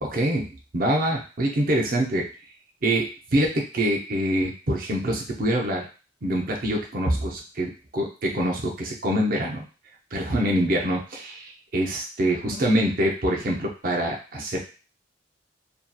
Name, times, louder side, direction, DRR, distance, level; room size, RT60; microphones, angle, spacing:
voice 1, 0.0-0.5 0.7-2.3 2.8-5.9 6.2-9.6 10.1-14.7, right 1 dB, 50° right, -1 dB, 0.6 m, -25 dB
2.7 x 2.3 x 2.3 m, 0.35 s
head